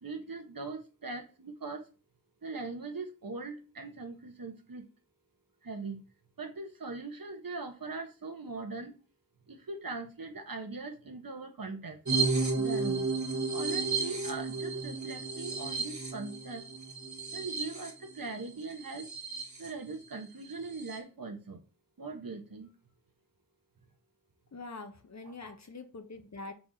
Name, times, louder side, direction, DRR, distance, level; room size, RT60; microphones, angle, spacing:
voice 1, 0.0-1.9 2.4-4.8 5.6-6.0 6.4-8.9 9.5-12.0 12.5-13.1 13.5-16.6 17.3-19.1 19.6-21.6 22.0-22.7 25.2-25.6, right 3 dB, 70° right, 1.5 m, -40 dB
sound 1, 12.0-19.7 20.1-20.2 20.5-21.0, right 4 dB, 55° right, 1.9 m, -33 dB
voice 2, 24.5-26.5, left 3 dB, 50° left, 1.2 m, -44 dB
6.1 x 4.8 x 4.1 m
wide cardioid pair, 70°, 35 cm